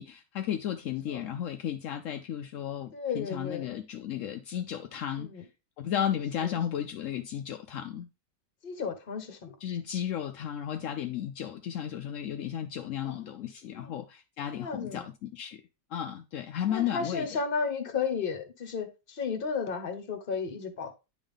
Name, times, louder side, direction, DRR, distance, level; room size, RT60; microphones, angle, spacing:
voice 1, 0.0-5.3 5.8-8.1 9.6-15.6 15.9-17.4, left 10 dB, 75° left, 0.7 m, -34 dB
voice 2, 2.9-3.7 5.2-5.4 6.4-6.5 8.6-9.5 13.0-13.2 13.7-14.0 14.5-15.0 16.7-20.9, left 5 dB, 40° left, 1.0 m, -33 dB
10.5 x 3.6 x 3.5 m
omnidirectional pair, 1.8 m